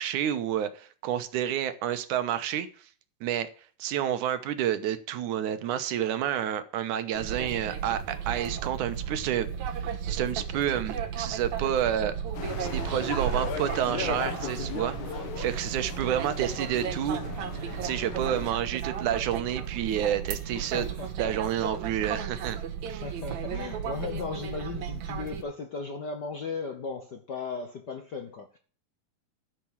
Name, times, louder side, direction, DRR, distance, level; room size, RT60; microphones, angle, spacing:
voice 1, 0.0-2.7 3.2-3.5 3.8-9.5 9.8-12.2 12.6-17.3 17.8-20.9 21.2-22.6 22.9-23.0, right 10 dB, 90° right, 2.5 m, -29 dB
sound 1, 7.1-25.4, right 8 dB, 70° right, 2.5 m, -34 dB
sound 2, 12.3-18.5, left 6 dB, 80° left, 3.1 m, -37 dB
voice 2, 20.6-21.1 23.0-28.6, left 4 dB, 65° left, 1.0 m, -36 dB
12.0 x 6.1 x 7.2 m
omnidirectional pair, 3.5 m